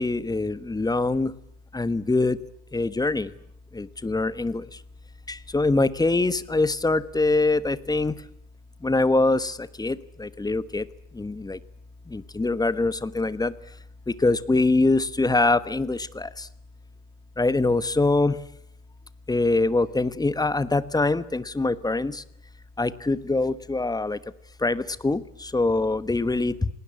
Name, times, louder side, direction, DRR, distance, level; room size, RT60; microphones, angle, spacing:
voice 1, 0.0-1.3 1.7-2.4 2.7-3.3 3.7-4.7 5.3-8.1 8.8-10.8 11.1-11.6 12.1-13.5 14.1-16.5 17.4-18.4 19.3-22.2 22.8-24.2 24.6-26.7, left 2 dB, 10° left, 16 dB, 1.2 m, -24 dB
27.5 x 19.5 x 9.9 m, 0.76 s
hypercardioid pair, 95°, 49 cm